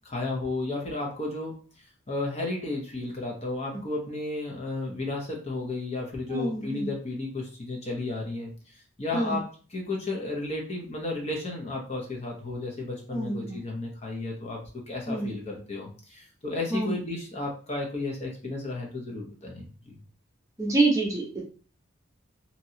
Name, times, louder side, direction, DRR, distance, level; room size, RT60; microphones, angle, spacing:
voice 1, 0.0-1.5 2.1-8.5 9.0-20.0, left 2 dB, 30° left, -1 dB, 0.7 m, -33 dB
voice 2, 6.3-6.9 9.1-9.4 13.1-13.6 15.1-15.3 16.7-17.0 20.6-21.4, right 2 dB, 15° right, -3 dB, 0.7 m, -27 dB
2.9 x 2.7 x 2.7 m, 0.40 s
head